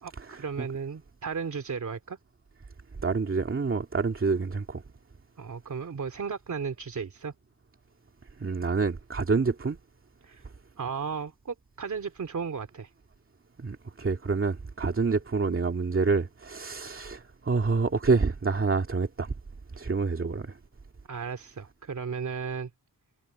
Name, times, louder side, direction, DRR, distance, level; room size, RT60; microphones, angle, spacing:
voice 1, 0.0-2.2 5.4-7.3 10.2-10.5 10.8-12.9 21.1-22.7, right 6 dB, 55° right, 2.7 m, -35 dB
voice 2, 3.0-4.8 8.4-9.8 13.6-19.3 19.8-20.5, right 4 dB, 35° right, 2.3 m, -27 dB
wide cardioid pair, 130°, 35 cm